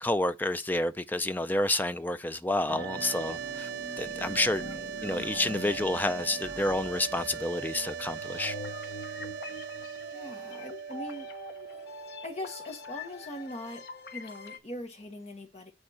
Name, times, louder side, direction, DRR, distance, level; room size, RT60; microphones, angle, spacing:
voice 1, 0.0-3.7 4.0-4.6 5.0-8.5, left 1 dB, 10° left, 0.4 m, -29 dB
Acoustic guitar, 2.7-7.9, right 3 dB, 55° right, 0.9 m, -49 dB
sound 1, 2.7-13.8, right 8 dB, 70° right, 0.3 m, -40 dB
sound 2, 2.8-14.6, left 2 dB, 65° left, 1.1 m, -44 dB
voice 2, 4.6-4.9 10.1-11.3 12.2-13.8 14.1-15.7, left 1 dB, 35° left, 1.4 m, -41 dB
9.9 x 3.6 x 4.3 m
head